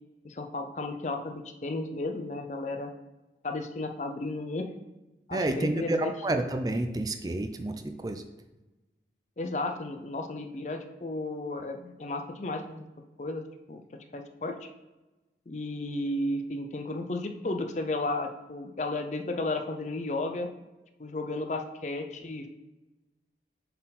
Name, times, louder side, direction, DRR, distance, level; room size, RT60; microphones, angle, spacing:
voice 1, 0.2-2.9 3.4-4.7 5.3-6.1 9.4-12.9 13.2-13.8 14.1-14.7 15.5-20.5 21.0-22.5, left 2 dB, 40° left, 6 dB, 0.5 m, -33 dB
voice 2, 5.3-8.2, right 1 dB, 20° right, 6 dB, 0.4 m, -29 dB
7.2 x 4.5 x 4.1 m, 1.1 s
head